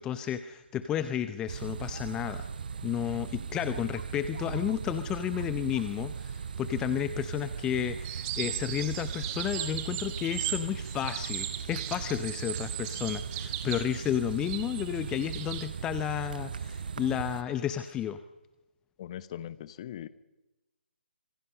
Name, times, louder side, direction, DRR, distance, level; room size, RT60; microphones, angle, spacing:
voice 1, 0.0-2.5 2.8-18.2, left 10 dB, 10° left, 11 dB, 0.7 m, -32 dB
sound 1, 1.5-17.4, right 6 dB, 50° right, 0.7 m, -38 dB
sound 2, 8.0-15.7, right 13 dB, 20° right, 1.6 m, -37 dB
voice 2, 19.0-20.1, left 11 dB, 35° left, 16 dB, 1.0 m, -40 dB
26.5 x 23.0 x 5.5 m, 1.0 s
figure-of-eight pair, 140°, 6 cm